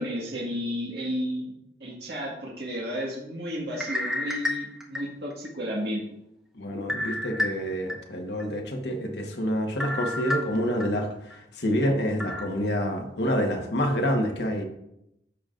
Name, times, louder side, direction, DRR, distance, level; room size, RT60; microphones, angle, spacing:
voice 1, 0.0-1.5 1.8-6.0, equal, 65° right, -4 dB, 1.6 m, -32 dB
sound 1, 3.7-5.5 6.0-6.1 6.9-7.9 8.4-8.5 9.8-10.9 11.3-11.4 12.2-12.5, left 1 dB, 5° right, 0.8 m, -30 dB
voice 2, 6.5-14.6, equal, 70° left, 2 dB, 1.2 m, -27 dB
13.0 x 5.1 x 2.5 m, 0.81 s
head